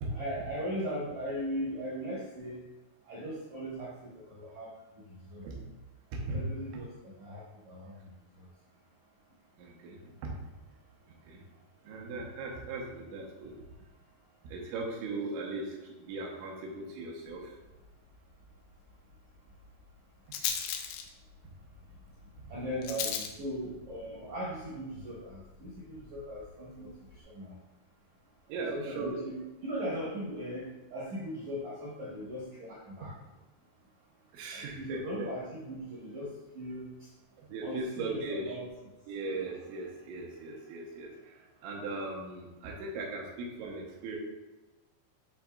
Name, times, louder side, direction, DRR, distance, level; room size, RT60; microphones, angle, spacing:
voice 1, 0.1-2.6 3.0-4.7 5.1-5.5 6.3-8.5 22.5-27.6 28.5-33.1 34.5-37.1 37.6-38.7, equal, 60° right, -7 dB, 1.9 m, -39 dB
voice 2, 6.1-6.5 6.7-6.8 9.6-10.4 11.1-11.5 11.8-13.6 14.4-17.6 22.4-22.5 28.5-29.2 34.3-35.3 37.4-38.5 39.1-44.2, right 2 dB, 85° right, -1 dB, 3.3 m, -38 dB
Rattle, 17.3-27.2, left 8 dB, 85° left, 3.0 m, -42 dB
11.0 x 4.0 x 2.4 m, 1.1 s
omnidirectional pair, 5.3 m